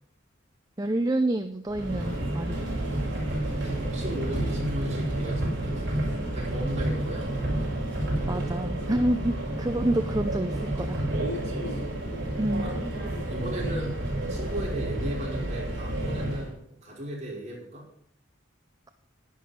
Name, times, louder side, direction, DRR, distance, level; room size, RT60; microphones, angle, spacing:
voice 1, 0.8-2.6 8.3-11.1 12.4-12.7, right 1 dB, 20° right, 8 dB, 0.5 m, -28 dB
Subway metro underground, 1.7-16.5, right 1 dB, 60° right, 5.3 m, -30 dB
voice 2, 3.6-7.4 11.3-11.8 12.6-12.7 13.3-17.8, equal, 35° right, -5 dB, 5.2 m, -37 dB
11.0 x 10.5 x 5.2 m, 0.67 s
head